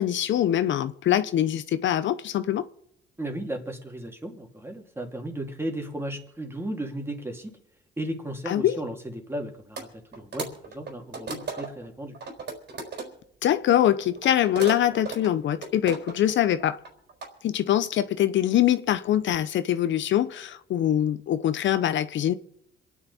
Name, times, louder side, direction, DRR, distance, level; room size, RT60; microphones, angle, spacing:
voice 1, 0.0-2.7 8.5-8.8 13.4-16.8 17.4-22.3, left 11 dB, 70° left, 0.7 m, -23 dB
voice 2, 3.2-7.5 8.0-12.2, right 1 dB, 10° right, 2.7 m, -35 dB
sound 1, 9.8-9.9 10.1-11.8 12.1-13.1 13.8-16.3 16.6-17.3, right 4 dB, 60° right, 4.1 m, -36 dB
26.5 x 9.6 x 4.2 m
cardioid pair, 90°, 20 cm